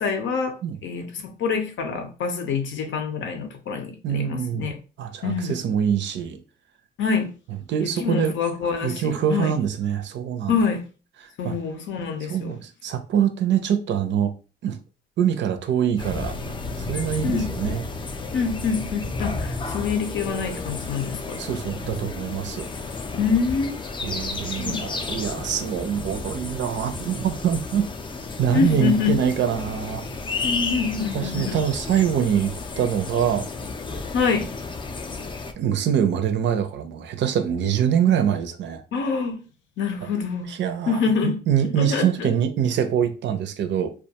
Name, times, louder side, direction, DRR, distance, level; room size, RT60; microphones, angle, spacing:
voice 1, 0.0-4.8 5.2-5.6 7.0-7.3 7.8-9.5 10.5-10.9 11.4-12.5 17.2-17.5 18.3-21.4 23.2-23.8 24.6-24.8 28.5-29.2 30.4-31.6 34.1-34.6 38.9-39.4 39.8-40.5 40.9-41.4 41.8-42.3, left 5 dB, 75° left, 0.6 m, -26 dB
voice 2, 4.0-4.7 5.0-6.4 7.7-8.3 8.8-10.6 11.4-11.6 12.3-14.3 14.6-14.8 15.2-17.8 21.4-22.7 24.0-27.9 28.4-30.1 31.1-33.5 35.6-38.8 40.5-43.9, right 9 dB, 65° right, 0.5 m, -24 dB
sound 1, 16.0-35.5, left 3 dB, 25° left, 0.3 m, -32 dB
2.3 x 2.2 x 2.8 m
cardioid pair, 90°, 20 cm